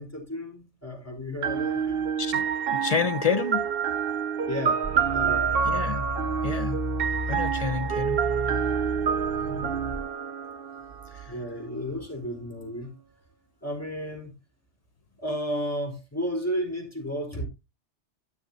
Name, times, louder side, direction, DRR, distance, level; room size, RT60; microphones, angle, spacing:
voice 1, 0.0-2.1 4.5-4.8 5.1-5.5 9.4-9.9 11.3-12.9 13.6-14.3 15.2-17.5, equal, 15° left, 4.1 m, -33 dB
sound 1, 1.4-11.2, right 7 dB, 55° right, 1.0 m, -27 dB
voice 2, 2.7-3.6 5.6-6.1 6.4-6.8 7.3-8.2 11.2-11.3, left 5 dB, 35° left, 0.9 m, -28 dB
sound 2, 4.8-10.1, equal, 30° right, 0.7 m, -34 dB
11.5 x 8.9 x 2.7 m
omnidirectional pair, 1.2 m